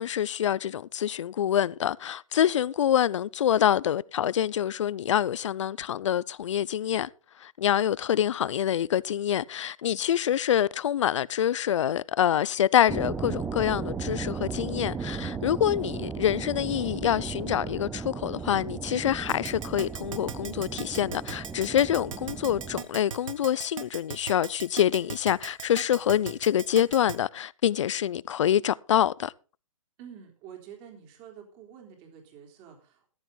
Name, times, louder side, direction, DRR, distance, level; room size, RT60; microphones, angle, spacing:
voice 1, 0.0-7.1 7.4-29.3, left 10 dB, 60° left, 0.6 m, -26 dB
sound 1, 12.9-22.8, right 5 dB, 5° right, 0.7 m, -35 dB
Keyboard (musical), 19.3-27.2, right 7 dB, 70° right, 1.7 m, -37 dB
voice 2, 30.0-33.1, right 8 dB, 30° right, 3.7 m, -48 dB
14.5 x 11.5 x 3.9 m
hypercardioid pair, 150°, 17 cm